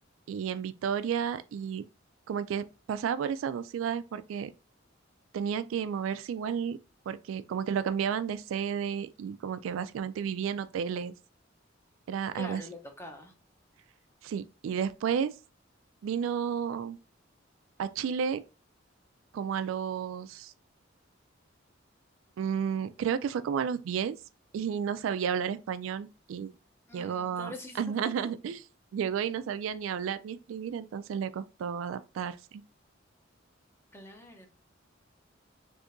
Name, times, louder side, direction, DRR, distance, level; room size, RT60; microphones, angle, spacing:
voice 1, 0.3-1.8 2.3-4.5 5.3-6.8 7.1-11.1 12.1-12.6 14.2-15.3 16.0-17.0 17.8-18.4 19.3-20.5 22.4-24.2 24.5-26.5 26.9-28.6 28.9-32.6, right 7 dB, 85° right, 0.3 m, -32 dB
voice 2, 12.3-13.3 26.9-27.8 33.9-34.5, left 1 dB, 10° left, 0.6 m, -44 dB
3.5 x 2.7 x 2.5 m
head